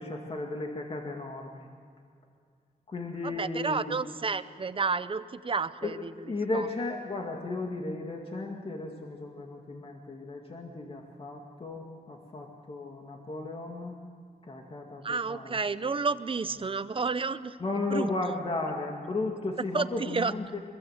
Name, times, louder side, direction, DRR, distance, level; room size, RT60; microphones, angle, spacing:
voice 1, 0.0-1.7 2.9-4.0 5.8-14.0 14.4-15.6 17.6-20.6, left 2 dB, 40° left, 1 dB, 2.1 m, -35 dB
voice 2, 3.2-6.1 6.5-6.7 15.0-17.6 17.9-18.1 19.7-20.3, right 4 dB, 35° right, 13 dB, 0.7 m, -31 dB
25.5 x 22.0 x 8.0 m, 2.2 s
wide cardioid pair, 165°, 15 cm